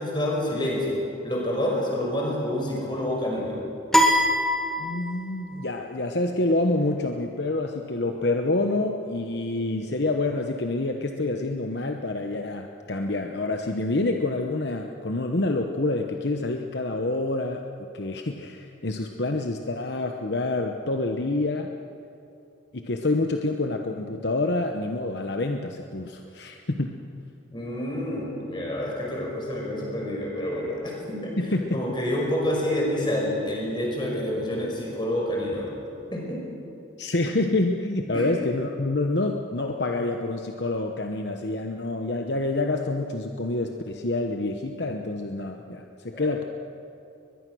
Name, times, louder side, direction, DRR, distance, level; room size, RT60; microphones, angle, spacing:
voice 1, 0.0-3.6 27.5-31.3 31.7-35.7 36.1-36.4 38.1-38.3 46.1-46.4, left 1 dB, 25° left, -2 dB, 5.5 m, -28 dB
sound 1, 3.9-5.4, equal, ahead, 1.8 m, -22 dB
voice 2, 4.8-17.6 17.9-21.7 22.7-26.9 31.4-31.8 37.0-46.4, left 2 dB, 60° left, 4 dB, 1.0 m, -27 dB
22.5 x 21.5 x 6.3 m, 2.8 s
head